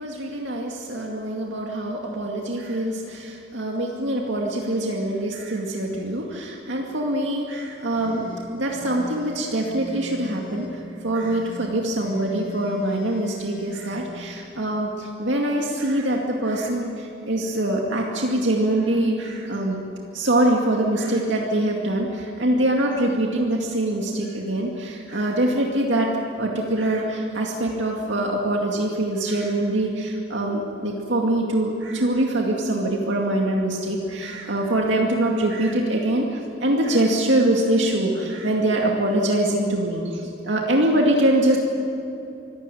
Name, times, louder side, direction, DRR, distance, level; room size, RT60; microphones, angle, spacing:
voice 1, 0.0-8.3 8.5-19.9 20.1-26.1 26.4-41.6, right 1 dB, 65° right, -1 dB, 2.3 m, -24 dB
sound 1, 7.9-10.7 11.2-14.0, left 2 dB, 45° left, 4.0 m, -40 dB
25.0 x 16.5 x 9.3 m, 2.9 s
head